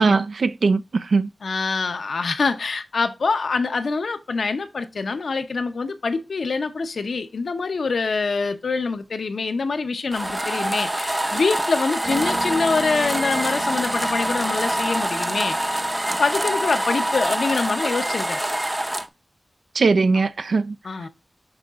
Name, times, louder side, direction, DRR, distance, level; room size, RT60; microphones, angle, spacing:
voice 1, 0.0-1.3 19.7-20.8, right 4 dB, 80° right, 0.4 m, -20 dB
voice 2, 1.4-15.6 16.2-18.4 20.8-21.1, left 4 dB, 80° left, 0.7 m, -25 dB
sound 1, 10.1-19.1, right 1 dB, 15° right, 0.6 m, -25 dB
sound 2, 12.0-19.0, right 2 dB, 60° right, 2.5 m, -38 dB
10.5 x 3.8 x 2.4 m
cardioid pair, 55°, 0 cm